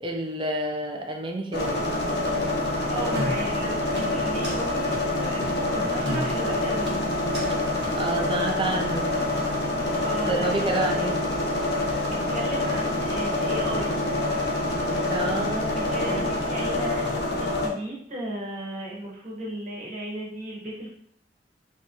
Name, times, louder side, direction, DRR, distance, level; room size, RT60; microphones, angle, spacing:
voice 1, 0.0-2.0 8.0-9.1 10.2-11.2 15.1-16.2, right 1 dB, 25° right, 2 dB, 0.4 m, -29 dB
sound 1, 1.5-17.7, left 2 dB, 60° left, 0.6 m, -26 dB
voice 2, 2.9-6.9 9.9-11.3 11.8-14.0 15.7-20.9, right 1 dB, 40° right, -4 dB, 1.0 m, -35 dB
sound 2, 3.2-3.6 4.0-4.6 4.9-5.0 5.4-5.6 6.1-6.5 6.9-7.5 7.8-7.9, left 1 dB, 80° right, 1.0 m, -33 dB
3.1 x 2.3 x 2.7 m, 0.66 s
head